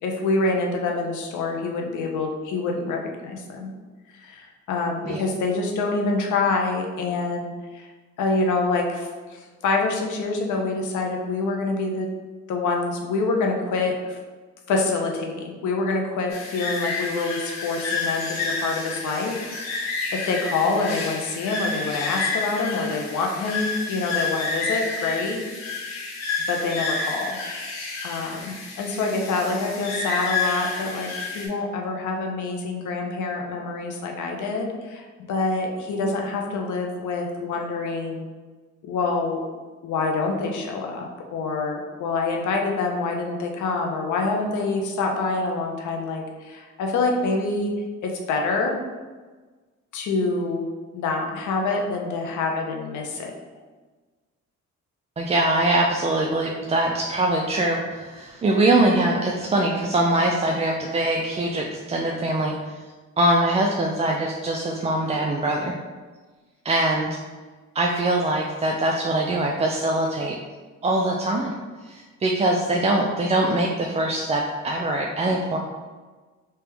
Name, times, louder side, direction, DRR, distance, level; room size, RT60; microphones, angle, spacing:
voice 1, 0.0-3.7 4.1-7.9 8.2-12.1 12.5-14.2 14.7-25.4 26.5-27.4 28.0-38.2 38.8-39.4 39.8-41.1 41.3-47.7 48.0-48.8 49.9-50.6 50.9-53.3, left 3 dB, 75° left, 1 dB, 0.8 m, -26 dB
sound 1, 16.3-31.5, left 3 dB, 60° left, 1.2 m, -30 dB
voice 2, 55.2-62.7 63.2-65.7 66.6-67.1 67.7-70.4 70.8-71.5 71.8-75.6, right 1 dB, 20° right, 0 dB, 0.3 m, -23 dB
3.4 x 2.9 x 3.3 m, 1.3 s
cardioid pair, 90°, 30 cm